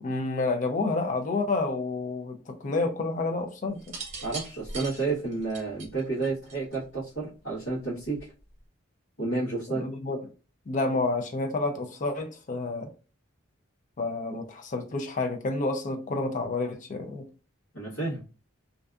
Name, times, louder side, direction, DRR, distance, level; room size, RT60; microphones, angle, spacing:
voice 1, 0.0-4.0 9.7-10.2 10.7-12.9 14.0-17.2, left 3 dB, 40° left, 0.4 m, -29 dB
sound 1, 3.8-6.9 8.0-8.4, right 3 dB, 35° right, 0.9 m, -40 dB
voice 2, 4.2-8.3 9.2-9.9 17.7-18.2, right 3 dB, 80° left, 1.0 m, -31 dB
2.5 x 2.3 x 2.3 m
head